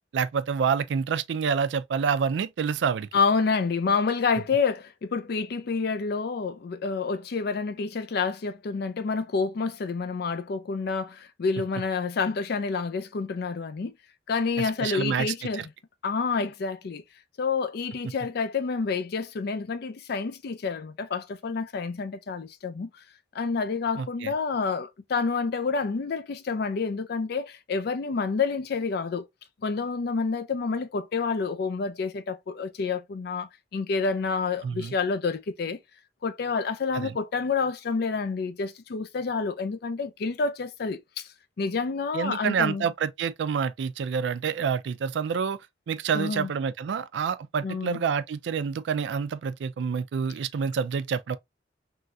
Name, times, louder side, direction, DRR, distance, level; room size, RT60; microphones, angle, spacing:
voice 1, 0.1-3.1 14.6-15.7 24.0-24.3 34.6-34.9 36.9-37.2 42.1-45.6 45.9-51.4, right 6 dB, 70° right, 0.3 m, -28 dB
voice 2, 3.1-13.9 14.3-15.6 16.0-17.0 17.4-22.9 23.3-29.2 29.6-35.8 36.2-41.2 41.6-42.9 46.1-46.5 47.6-48.0, left 4 dB, 60° left, 0.4 m, -28 dB
3.1 x 2.6 x 2.3 m
head